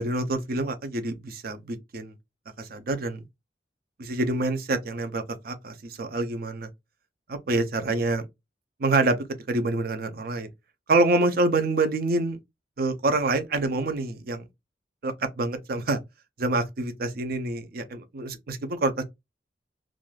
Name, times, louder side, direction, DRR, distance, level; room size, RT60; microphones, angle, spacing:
voice 1, 0.0-2.1 2.6-3.2 4.0-6.7 7.3-8.3 8.8-9.2 9.5-10.5 10.9-12.4 12.8-14.5 15.0-16.0 16.4-19.0, right 2 dB, 55° right, 0.5 m, -26 dB
2.5 x 2.3 x 3.1 m
head